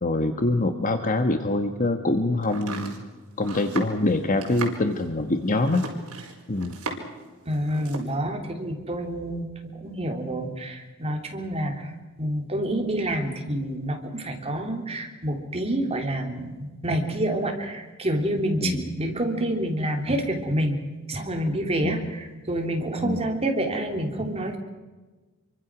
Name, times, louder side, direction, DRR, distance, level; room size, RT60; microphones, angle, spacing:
voice 1, 0.0-3.0 3.4-5.9 6.5-6.7 18.6-18.9 21.8-22.1 23.0-23.3, left 2 dB, 35° left, 7 dB, 1.4 m, -24 dB
Domestic sounds home sounds, 2.4-7.2 7.5-8.1, right 3 dB, 75° right, 5.0 m, -36 dB
voice 2, 7.5-11.9 12.2-20.8 21.1-24.6, right 1 dB, 30° right, 3 dB, 3.1 m, -28 dB
27.0 x 24.0 x 6.2 m, 1.2 s
head